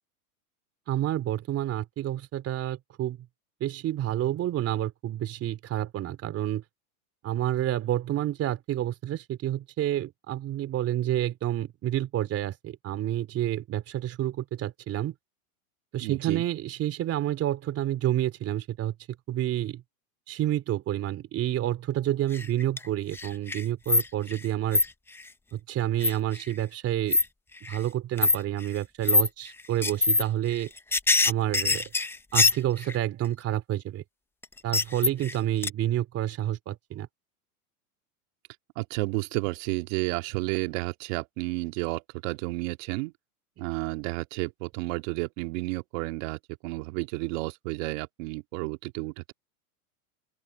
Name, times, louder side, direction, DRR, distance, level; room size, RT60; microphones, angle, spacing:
voice 1, 0.9-3.2 3.6-6.6 7.2-15.1 15.9-18.9 19.3-19.8 20.3-24.8 25.5-27.2 27.7-30.7 31.2-31.9 32.3-34.0 34.6-37.1, right 12 dB, 30° right, 3.0 m, -29 dB
voice 2, 16.0-16.4 38.8-43.1 43.6-49.3, right 24 dB, 55° right, 2.4 m, -31 dB
sound 1, 22.3-22.9 23.1-24.5 24.7-24.9 26.0-26.4 27.1-27.2 27.7-27.8 28.2-28.4 29.0-29.3 29.8-30.2 30.5-33.0 34.4-35.4 35.6-35.7, left 3 dB, 5° left, 0.6 m, -23 dB
open air
supercardioid pair, 130°, 45 cm